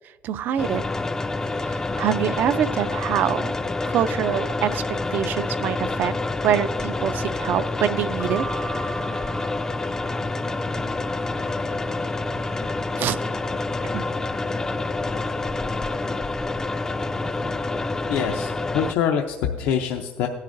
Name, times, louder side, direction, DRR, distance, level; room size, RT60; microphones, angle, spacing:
voice 1, 0.2-0.8 1.7-3.5 3.9-4.8 5.1-6.1 6.4-8.4 13.0-13.2 13.9-14.1, right 9 dB, 60° right, 14 dB, 0.4 m, -25 dB
sound 1, 0.6-18.9, left 2 dB, 15° left, 0.3 m, -27 dB
Keyboard (musical), 8.2-10.7, right 5 dB, 70° left, 0.9 m, -38 dB
voice 2, 18.1-20.3, left 8 dB, 85° left, 3 dB, 0.6 m, -25 dB
16.5 x 10.5 x 2.6 m, 1.5 s
cardioid pair, 120°, 4 cm